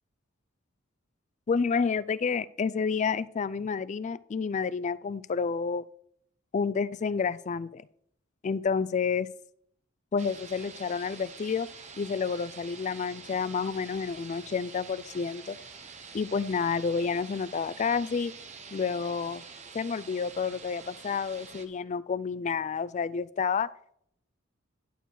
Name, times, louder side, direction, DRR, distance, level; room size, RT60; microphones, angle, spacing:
voice 1, 1.5-5.8 6.5-7.8 8.4-9.3 10.1-11.7 12.0-15.6 16.1-18.3 18.7-19.4 19.7-23.7, left 5 dB, 35° left, 17 dB, 0.3 m, -29 dB
sound 1, 10.2-21.6, right 5 dB, 35° right, 0.9 m, -47 dB
11.0 x 6.5 x 3.9 m, 0.68 s
head